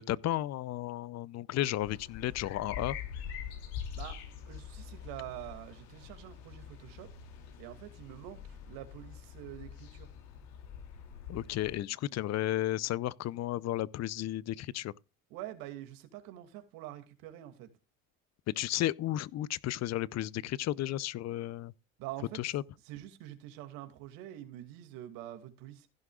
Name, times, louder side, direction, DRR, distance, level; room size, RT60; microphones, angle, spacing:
voice 1, 0.0-3.0 11.3-14.9 18.5-21.7 22.3-22.6, left 14 dB, 45° left, 0.7 m, -33 dB
sound 1, 1.8-11.8, left 8 dB, 75° left, 2.9 m, -45 dB
voice 2, 3.9-7.1 7.6-10.1 15.3-17.7 22.0-22.4 22.8-25.9, right 13 dB, 70° right, 2.5 m, -46 dB
16.0 x 11.0 x 2.4 m
supercardioid pair, 85°, 36 cm